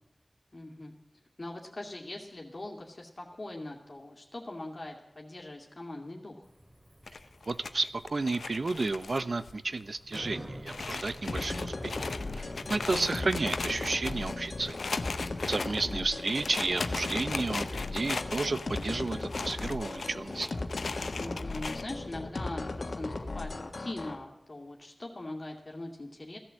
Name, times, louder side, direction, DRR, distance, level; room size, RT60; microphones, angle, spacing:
voice 1, 0.5-1.0 1.4-6.4 15.3-16.0 21.2-26.4, left 2 dB, 50° left, -1 dB, 2.4 m, -41 dB
Bicycle, 6.4-21.3, right 1 dB, 20° right, 2.6 m, -51 dB
sound 1, 7.1-9.5 9.8-9.9 10.1-10.2 10.7-21.8, left 4 dB, 90° left, 0.7 m, -38 dB
voice 2, 7.5-12.0 12.3-14.8 15.5-20.5, right 3 dB, 65° right, 13 dB, 0.7 m, -32 dB
sound 2, 11.3-24.2, left 2 dB, 70° left, 1.5 m, -37 dB
16.0 x 11.5 x 7.6 m, 0.88 s
cardioid pair, 40°, 0 cm